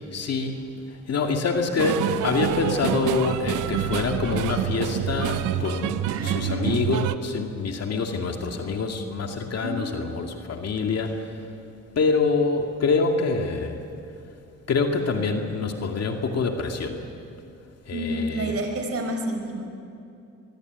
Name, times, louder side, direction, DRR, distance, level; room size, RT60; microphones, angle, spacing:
voice 1, 0.1-11.4 12.0-13.8 14.7-17.0 17.9-18.6, left 4 dB, 55° left, 3 dB, 2.5 m, -26 dB
sound 1, 1.8-7.2, right 12 dB, 85° right, 0.9 m, -27 dB
voice 2, 6.1-6.8 9.6-9.9 17.9-19.6, right 1 dB, 50° right, 4 dB, 5.2 m, -29 dB
22.5 x 22.0 x 9.5 m, 2.7 s
cardioid pair, 90°, 30 cm